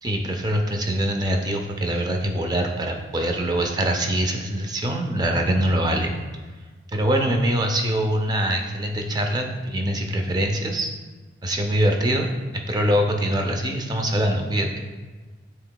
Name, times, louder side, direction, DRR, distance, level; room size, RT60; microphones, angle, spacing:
voice 1, 0.0-6.1 6.9-10.9 11.4-12.3 12.5-14.8, right 1 dB, 20° right, 3 dB, 0.4 m, -23 dB
7.3 x 2.9 x 2.2 m, 1.4 s
head